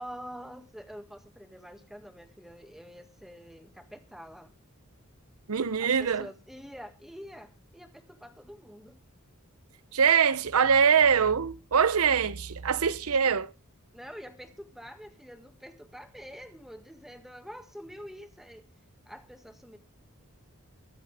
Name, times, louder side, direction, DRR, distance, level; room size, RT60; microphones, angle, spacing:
voice 1, 0.0-4.5 5.8-9.0 13.9-18.7 19.1-19.8, equal, ahead, 1.6 m, -46 dB
voice 2, 5.5-6.3 9.9-13.5, right 7 dB, 85° right, 0.7 m, -23 dB
22.0 x 7.5 x 3.5 m
head